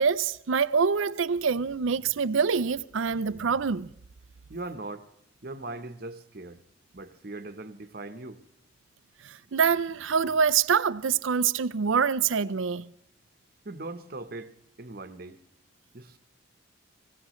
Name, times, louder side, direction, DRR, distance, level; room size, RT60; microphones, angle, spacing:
voice 1, 0.0-3.9 9.2-12.9, right 6 dB, 75° right, 0.5 m, -25 dB
voice 2, 4.5-5.1 5.4-6.6 6.9-8.4 13.6-14.5 14.8-15.4 15.9-16.2, right 2 dB, 45° right, 1.0 m, -39 dB
25.0 x 16.5 x 3.1 m
head